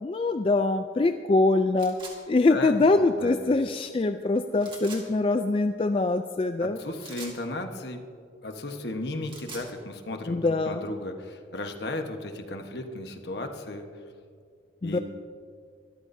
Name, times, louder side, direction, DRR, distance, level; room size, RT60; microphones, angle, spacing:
voice 1, 0.0-1.9 2.3-6.8 10.3-10.8 14.8-15.0, left 3 dB, 30° left, 8 dB, 0.3 m, -23 dB
sound 1, 1.8-2.2 4.6-5.0 7.0-7.4 9.1-9.7, right 3 dB, 25° right, 2.0 m, -42 dB
voice 2, 2.5-3.6 6.6-8.0 8.4-13.9 14.8-15.0, left 2 dB, 65° left, 5 dB, 1.2 m, -35 dB
23.0 x 13.0 x 2.7 m, 2.1 s
head